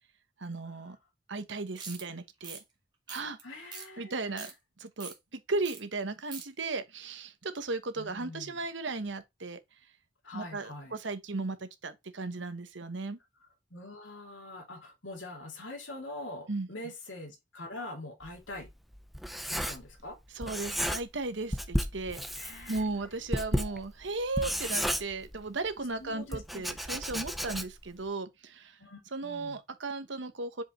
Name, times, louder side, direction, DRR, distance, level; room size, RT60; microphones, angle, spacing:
voice 1, 0.4-1.0 1.3-2.6 3.1-3.4 4.0-4.5 4.8-9.6 10.3-13.2 16.5-16.7 20.3-22.2 22.7-28.8 29.1-30.6, right 3 dB, 70° right, 1.1 m, -36 dB
sound 1, 1.8-2.0 2.4-2.6 3.1-3.4 3.7-3.9 4.2-4.5 5.0-5.1 5.6-5.8 6.1-6.4, right 5 dB, 25° right, 2.0 m, -42 dB
voice 2, 3.4-4.5 8.0-8.6 10.2-10.9 13.7-18.7 19.5-20.2 22.4-22.8 23.4-23.8 26.0-26.6 28.8-29.6, left 2 dB, 75° left, 2.8 m, -44 dB
Writing, 18.3-20.1 20.4-21.3 21.5-25.7 26.3-27.9, equal, ahead, 0.6 m, -33 dB
7.0 x 5.2 x 3.1 m
head